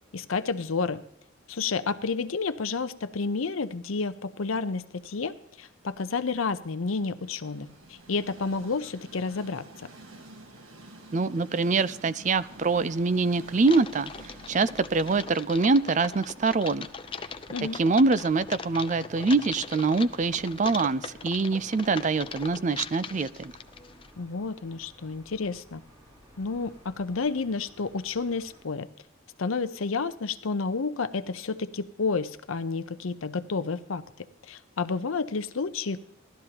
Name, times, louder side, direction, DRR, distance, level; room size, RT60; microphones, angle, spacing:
voice 1, 0.1-1.0 1.5-9.6 17.5-17.8 24.2-25.8 26.4-28.9 29.4-34.0 34.5-36.0, left 4 dB, 80° left, 12 dB, 0.7 m, -30 dB
Train, 4.4-22.4, right 1 dB, 90° right, 1.6 m, -52 dB
voice 2, 11.1-16.9 17.7-23.5, right 3 dB, 35° right, 16 dB, 0.4 m, -25 dB
sound 1, 12.3-28.7, equal, 20° right, 2.6 m, -54 dB
Typing, 13.6-24.1, left 5 dB, 25° left, 0.5 m, -40 dB
17.5 x 12.5 x 2.9 m, 0.78 s
head